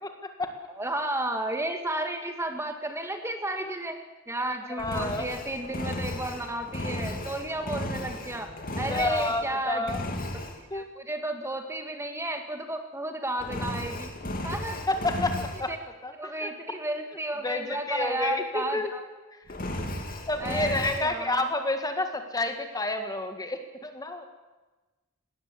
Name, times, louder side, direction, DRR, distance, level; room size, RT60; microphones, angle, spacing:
voice 1, 0.0-0.5 3.6-3.7 4.7-5.3 8.9-10.0 10.7-10.9 14.9-15.7 16.0-16.5 17.4-18.9 20.3-24.3, left 2 dB, 15° left, 6 dB, 1.8 m, -30 dB
voice 2, 0.8-4.0 4.3-8.5 8.8-9.9 10.6-14.1 14.4-14.8 15.7-15.8 16.2-19.0 20.4-21.4, right 1 dB, 10° right, 5 dB, 1.7 m, -32 dB
Engine, 4.8-9.5 9.9-10.6 13.4-15.7 19.5-21.1, left 1 dB, 40° left, 2.6 m, -34 dB
20.5 x 17.5 x 8.4 m, 1.2 s
head